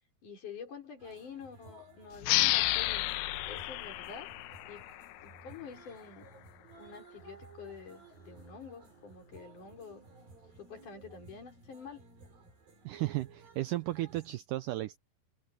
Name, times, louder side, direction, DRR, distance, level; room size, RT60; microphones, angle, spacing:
voice 1, 0.2-3.0 3.5-4.3 4.7-4.8 5.2-6.3 6.8-10.1 10.6-12.0, left 6 dB, 55° left, 6.3 m, -47 dB
sound 1, 1.0-14.3, right 3 dB, 65° right, 8.6 m, -56 dB
sound 2, 2.2-5.5, left 18 dB, 85° left, 2.6 m, -31 dB
voice 2, 12.9-15.0, right 17 dB, 85° right, 1.9 m, -34 dB
omnidirectional pair, 4.4 m